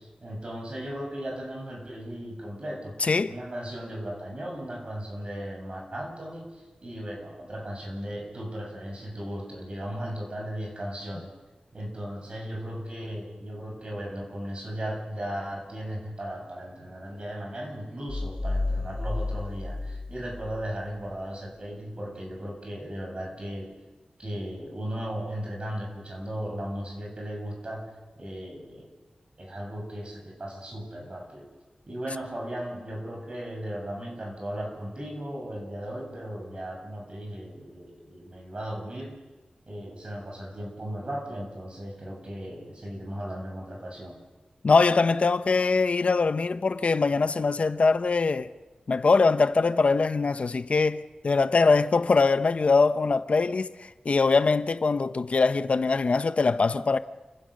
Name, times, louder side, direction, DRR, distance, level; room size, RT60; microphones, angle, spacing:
voice 1, 0.0-11.3 11.7-23.7 24.2-27.9 28.2-28.9 29.4-31.5 31.9-39.2 39.7-44.2, equal, 45° right, 7.1 m, -36 dB
voice 2, 3.0-3.3 44.6-48.5 48.9-57.0, left 4 dB, 60° left, 0.8 m, -22 dB
sound 1, 18.1-20.7, left 2 dB, 35° left, 2.1 m, -31 dB
28.5 x 16.0 x 6.5 m
wide cardioid pair, 80°, 2 cm